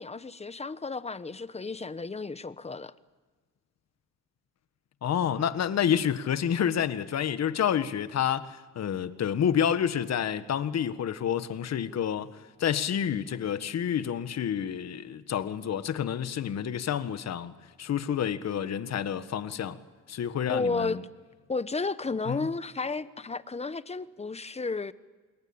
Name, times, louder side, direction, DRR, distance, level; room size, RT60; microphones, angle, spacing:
voice 1, 0.0-2.9 20.5-21.0 21.5-24.9, left 3 dB, 20° left, 1.1 m, -32 dB
voice 2, 5.0-12.3 12.6-17.5 17.8-19.8 20.1-21.0 22.2-22.5, left 9 dB, 60° left, 1.6 m, -29 dB
27.0 x 22.5 x 8.8 m
cardioid pair, 90°, 30 cm